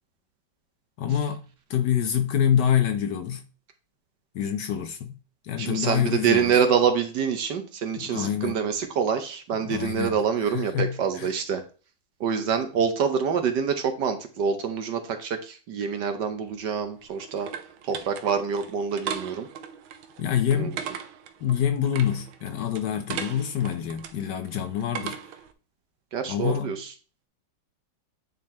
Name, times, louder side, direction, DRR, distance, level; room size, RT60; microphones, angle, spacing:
voice 1, 1.0-3.4 4.3-5.1 5.4-6.6 8.0-8.6 9.6-10.2 10.4-11.3 20.2-20.8 21.4-25.2 26.3-26.8, left 9 dB, 70° left, 1.1 m, -26 dB
voice 2, 5.6-11.6 12.2-17.5 17.8-19.5 20.5-20.7 26.1-26.9, right 7 dB, 60° right, 1.4 m, -26 dB
sound 1, 16.5-25.5, right 8 dB, 80° right, 1.6 m, -38 dB
9.3 x 3.9 x 4.3 m
omnidirectional pair, 2.2 m